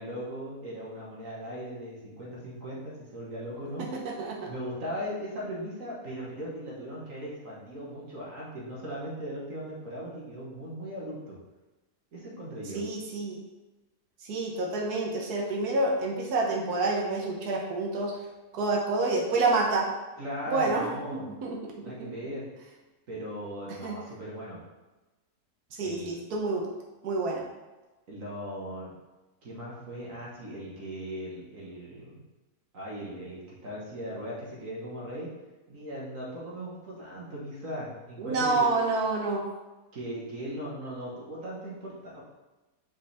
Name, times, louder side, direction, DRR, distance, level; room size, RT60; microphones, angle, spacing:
voice 1, 0.0-3.9 4.5-11.4 12.1-12.8 20.2-21.3 21.8-22.5 23.1-24.6 25.8-26.2 28.1-28.9 29.4-32.2 32.7-35.3 35.7-38.7 39.9-42.2, equal, 60° right, -5 dB, 1.8 m, -38 dB
voice 2, 3.8-4.5 12.7-13.4 14.2-18.1 18.5-19.9 20.5-21.7 22.0-22.1 23.8-24.0 25.7-26.7 27.0-27.4 38.2-39.5, right 3 dB, 85° right, -1 dB, 1.5 m, -28 dB
5.7 x 5.1 x 3.5 m, 1.1 s
omnidirectional pair, 1.6 m